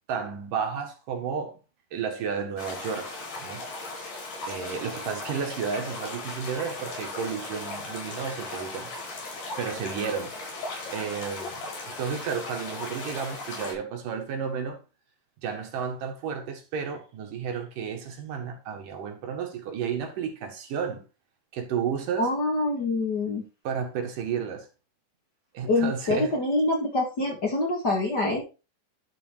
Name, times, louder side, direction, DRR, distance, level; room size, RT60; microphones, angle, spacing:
voice 1, 0.1-1.6 1.9-3.6 4.5-9.0 9.6-10.3 10.9-11.7 12.0-14.8 15.4-21.0 21.5-22.3 23.6-24.7 25.5-26.4, right 6 dB, 80° right, 3.2 m, -32 dB
sound 1, 2.6-13.7, left 2 dB, 75° left, 5.3 m, -37 dB
voice 2, 22.2-23.4 25.7-28.4, left 2 dB, 35° left, 2.0 m, -25 dB
11.0 x 4.6 x 4.6 m
omnidirectional pair, 3.8 m